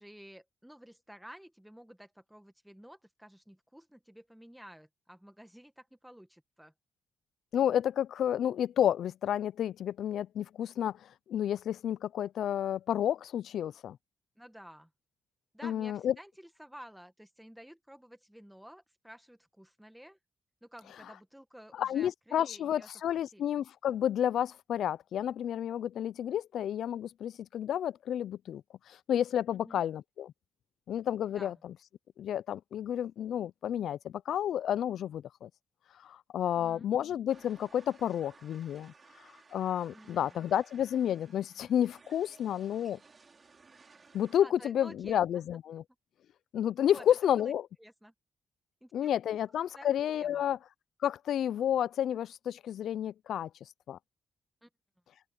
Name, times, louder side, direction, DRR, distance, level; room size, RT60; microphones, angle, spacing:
voice 1, 0.0-6.7 14.4-14.9 15.5-20.2 20.6-22.9 23.3-23.6 29.5-29.8 31.3-31.6 36.5-36.9 39.9-40.4 44.4-45.2 46.9-47.5 47.8-48.1 48.8-49.4 49.7-49.9 50.1-50.5 54.6-54.7, equal, 5° right, 1.7 m, -52 dB
voice 2, 7.5-14.0 15.6-16.1 21.7-28.6 28.9-30.3 30.9-31.7 32.2-35.5 36.0-38.9 39.5-43.0 44.1-45.8 46.5-47.6 48.9-50.6 51.0-53.5 53.9-54.0, left 10 dB, 80° left, 0.4 m, -31 dB
sound 1, 37.3-44.4, right 4 dB, 35° right, 4.4 m, -59 dB
open air
cardioid pair, 80°, 0 cm